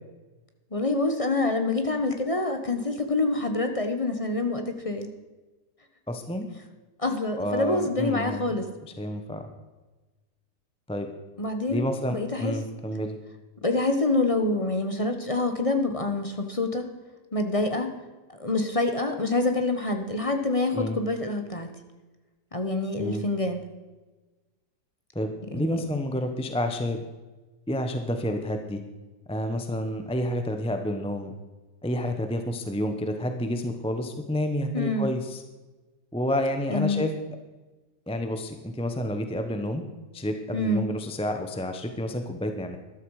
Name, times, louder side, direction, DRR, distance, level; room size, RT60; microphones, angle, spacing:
voice 1, 0.7-5.1 7.0-8.7 11.4-11.8 12.1-12.5 13.6-16.8 17.3-17.9 18.4-21.7 22.5-23.6 25.5-25.8 34.7-35.1 36.7-37.0 40.5-40.9, left 2 dB, 25° left, 6 dB, 1.0 m, -26 dB
voice 2, 6.1-6.5 7.4-8.4 9.0-9.4 10.9-11.1 11.7-13.2 20.7-21.0 23.0-23.2 25.1-27.0 27.7-28.8 29.3-31.3 31.8-35.4 36.1-37.1 38.1-39.8 40.1-42.8, left 1 dB, 5° left, 6 dB, 0.6 m, -29 dB
14.0 x 12.0 x 4.9 m, 1.2 s
omnidirectional pair, 1.9 m